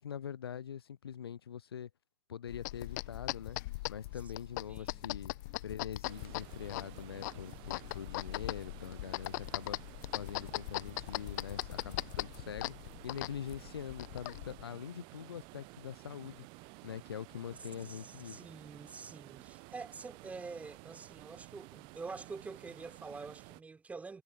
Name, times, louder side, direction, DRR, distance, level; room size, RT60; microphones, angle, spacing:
voice 1, 0.0-1.9 2.3-3.6 3.9-5.3 5.6-12.7 13.0-16.5 16.8-18.4, left 8 dB, 65° left, 0.8 m, -44 dB
sound 1, 2.5-14.6, left 21 dB, 45° left, 1.2 m, -40 dB
sound 2, 2.8-9.1, right 8 dB, 65° right, 6.7 m, -67 dB
voice 2, 4.7-5.4 17.8-24.2, right 4 dB, 10° right, 4.0 m, -47 dB
sound 3, 6.0-23.6, right 31 dB, 35° right, 1.2 m, -53 dB
figure-of-eight pair, 100°, 14 cm